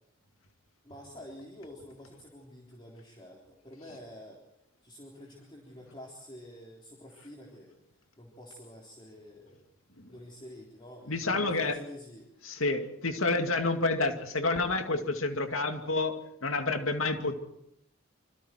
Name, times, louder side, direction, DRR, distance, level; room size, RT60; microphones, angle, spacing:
voice 1, 0.8-4.4 4.8-9.7 10.1-12.3, left 1 dB, 25° left, -2 dB, 3.7 m, -48 dB
voice 2, 11.1-11.8 12.4-17.4, left 3 dB, 90° left, 5 dB, 2.4 m, -29 dB
27.0 x 25.5 x 4.6 m, 0.81 s
head